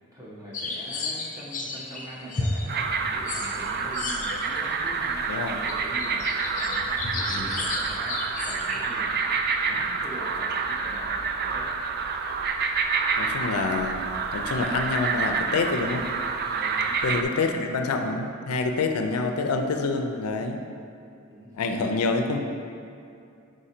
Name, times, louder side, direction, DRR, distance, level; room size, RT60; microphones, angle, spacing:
voice 1, 0.0-9.3 9.7-11.7 16.5-17.3 21.3-21.8, equal, 15° right, -6 dB, 1.2 m, -43 dB
sound 1, 0.5-4.7 5.0-5.1 5.6-8.9, left 3 dB, 35° left, 0.6 m, -33 dB
sound 2, 2.7-17.2, right 5 dB, 45° right, 0.3 m, -28 dB
voice 2, 5.3-5.6 7.3-7.5 9.7-9.8 13.2-14.0 14.3-16.1 17.0-20.6 21.5-22.4, left 3 dB, 80° left, 5 dB, 0.4 m, -27 dB
5.0 x 4.9 x 4.3 m, 2.5 s
head